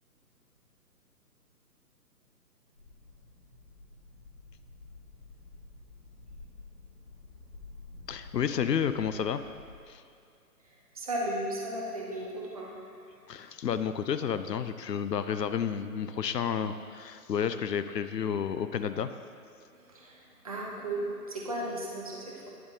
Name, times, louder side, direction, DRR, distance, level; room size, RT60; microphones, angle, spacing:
sound 1, 2.8-9.7, left 3 dB, 50° left, 2.0 m, -51 dB
voice 1, 8.1-9.4 9.9-10.0 13.3-19.1, left 7 dB, 80° left, 11 dB, 0.6 m, -31 dB
voice 2, 10.9-12.7 19.8-22.5, right 1 dB, 25° right, -3 dB, 0.7 m, -35 dB
10.0 x 7.6 x 2.7 m, 2.3 s
figure-of-eight pair, 140°, 49 cm